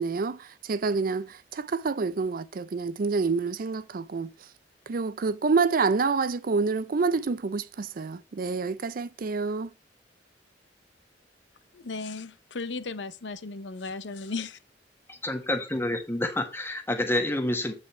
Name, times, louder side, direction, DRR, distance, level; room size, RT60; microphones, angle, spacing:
voice 1, 0.0-4.3 4.9-9.7, right 4 dB, 50° right, 0.5 m, -27 dB
voice 2, 11.7-14.6, left 3 dB, 80° left, 0.7 m, -36 dB
voice 3, 15.1-17.7, left 1 dB, 15° left, 1.4 m, -28 dB
8.7 x 5.3 x 4.3 m
head